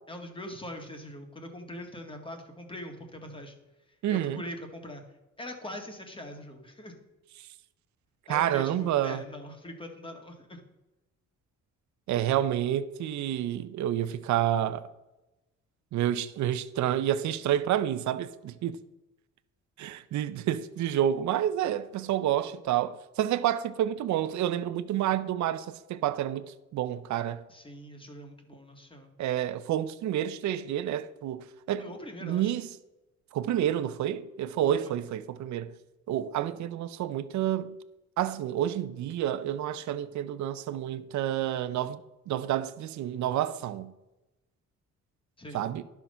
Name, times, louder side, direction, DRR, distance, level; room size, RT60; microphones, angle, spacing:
voice 1, 0.1-3.5 4.1-5.0 5.4-7.0 8.3-10.6 27.5-29.1 31.8-32.5 34.6-35.0 45.4-45.7, left 1 dB, 15° left, 1.9 m, -42 dB
voice 2, 4.0-4.4 8.3-9.2 12.1-14.8 15.9-18.8 19.8-26.4 26.7-27.4 29.2-31.9 32.2-32.7 33.3-35.7 36.1-37.8 38.2-42.0 42.3-43.9 45.5-45.8, right 11 dB, 70° right, 0.6 m, -29 dB
11.0 x 6.0 x 5.5 m
cardioid pair, 90°, 30 cm